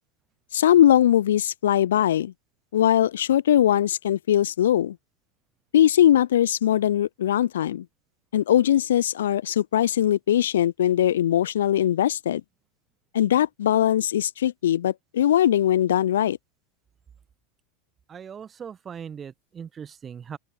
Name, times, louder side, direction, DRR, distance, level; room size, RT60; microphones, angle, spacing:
voice 1, 0.5-2.3 2.7-5.0 5.7-7.8 8.3-12.4 13.1-16.4, left 11 dB, 65° left, 0.6 m, -21 dB
voice 2, 18.1-20.4, right 7 dB, 25° right, 1.5 m, -39 dB
open air
figure-of-eight pair, 85°, 0 cm